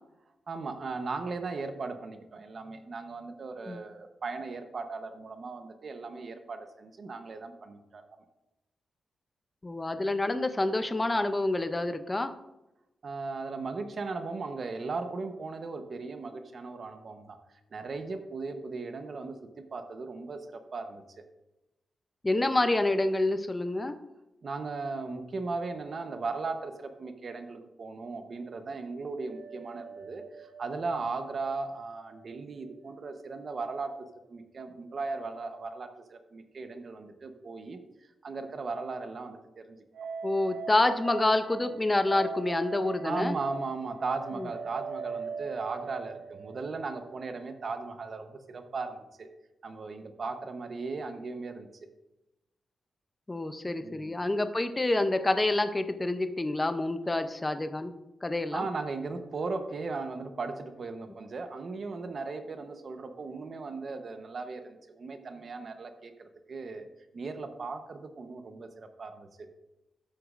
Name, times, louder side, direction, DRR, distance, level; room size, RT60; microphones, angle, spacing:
voice 1, 0.5-8.1 13.0-17.4 17.7-21.0 24.4-37.8 38.2-40.1 43.0-49.3 49.6-51.7 53.8-54.1 58.5-66.9 67.1-69.3, right 4 dB, 45° right, 7 dB, 0.9 m, -37 dB
voice 2, 9.6-12.3 22.2-23.9 40.2-43.3 44.4-44.5 53.3-57.9 58.2-58.6, left 2 dB, 15° left, 9 dB, 0.5 m, -27 dB
sound 1, 29.2-32.4 32.7-32.8 39.9-47.9, right 5 dB, 85° right, 0.4 m, -41 dB
12.5 x 8.1 x 2.5 m, 0.95 s
wide cardioid pair, 150°, 0 cm